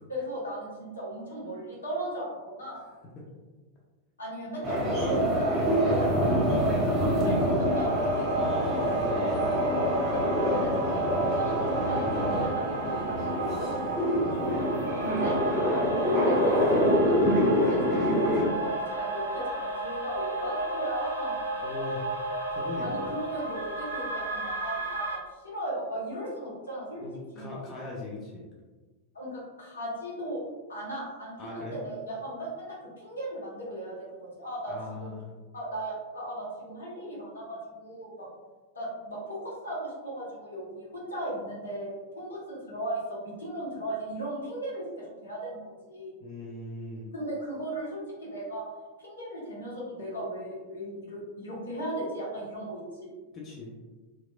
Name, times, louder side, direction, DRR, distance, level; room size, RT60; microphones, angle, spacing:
voice 1, 0.1-2.8 4.2-6.9 7.2-8.6 10.3-13.9 15.0-15.4 16.0-21.6 22.8-27.0 27.3-27.5 29.1-30.4 30.7-34.7 35.0-35.1 35.5-38.3 38.7-46.1 47.1-48.6 49.0-53.1, right 1 dB, 75° left, -6 dB, 1.0 m, -37 dB
sound 1, 4.6-18.4, equal, 25° right, 0.9 m, -26 dB
voice 2, 6.8-7.6 8.4-9.5 14.2-14.5 21.6-22.2 22.5-23.1 26.9-28.4 31.4-31.7 34.7-35.3 46.2-47.1 53.3-53.7, left 3 dB, 30° left, -4 dB, 0.5 m, -39 dB
sound 2, 7.6-25.2, right 2 dB, 80° right, 0.6 m, -33 dB
2.9 x 2.4 x 2.2 m, 1.3 s
figure-of-eight pair, 90°, 0 cm